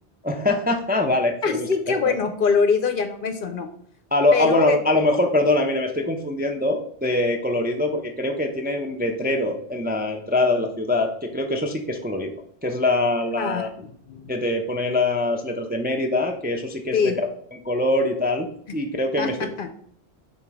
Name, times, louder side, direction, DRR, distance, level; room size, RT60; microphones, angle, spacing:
voice 1, 0.2-1.7 2.0-2.1 4.1-12.3 12.6-13.7 14.3-17.1 17.5-18.5 18.7-19.4, left 2 dB, 10° right, 3 dB, 0.4 m, -23 dB
voice 2, 1.4-3.7 4.3-4.8 13.4-14.3 16.9-17.1 19.2-19.7, left 5 dB, 55° left, 8 dB, 0.8 m, -24 dB
5.8 x 3.9 x 4.6 m, 0.62 s
omnidirectional pair, 1.1 m